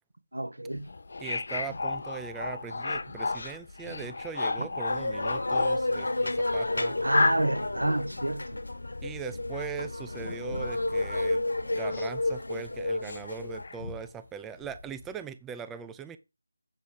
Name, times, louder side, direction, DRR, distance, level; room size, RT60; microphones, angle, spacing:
voice 1, 0.3-0.9 4.6-4.7 7.0-8.6, right 1 dB, 85° right, 1.2 m, -29 dB
sound 1, 0.7-12.3 12.6-14.1 14.6-15.1, left 3 dB, 55° left, 1.0 m, -34 dB
voice 2, 1.2-6.9 9.0-11.4 11.8-16.2, right 7 dB, 5° right, 0.3 m, -40 dB
sound 2, 4.9-13.7, left 2 dB, 80° left, 1.4 m, -31 dB
8.3 x 4.9 x 5.0 m
figure-of-eight pair, 165°, 0 cm